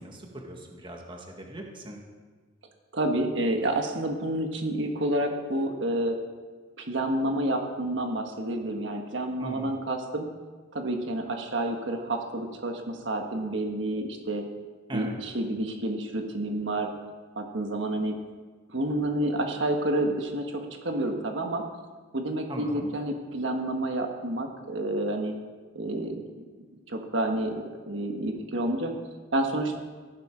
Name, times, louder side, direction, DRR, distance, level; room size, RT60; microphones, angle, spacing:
voice 1, 0.0-2.0 9.4-9.7 14.9-15.1 22.5-22.9, right 1 dB, 25° right, 1 dB, 1.8 m, -39 dB
voice 2, 2.9-6.1 6.8-10.3 10.7-14.4 14.9-16.9 17.4-18.1 18.7-21.6 22.1-25.3 25.7-26.2 26.9-28.9 29.3-29.8, right 1 dB, 65° right, 3 dB, 1.5 m, -29 dB
15.0 x 12.0 x 5.0 m, 1.4 s
head